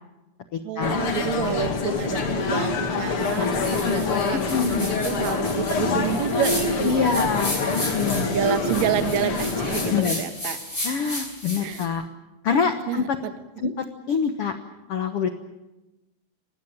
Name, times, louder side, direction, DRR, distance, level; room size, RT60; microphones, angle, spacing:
voice 1, 0.6-7.3 8.3-10.6 11.6-11.8 12.9-13.7, right 10 dB, 60° right, 9 dB, 2.2 m, -29 dB
sound 1, 0.8-10.0, left 4 dB, 40° left, 2.6 m, -25 dB
voice 2, 1.4-1.7 4.3-4.9 6.8-8.3 9.9-10.2 10.8-12.1 12.4-13.2 13.6-13.7 14.1-14.6 14.9-15.3, left 6 dB, 80° left, 8 dB, 1.3 m, -25 dB
sound 2, 3.2-11.8, left 1 dB, 15° left, 5.7 m, -34 dB
25.5 x 19.0 x 8.9 m, 1.0 s
omnidirectional pair, 4.5 m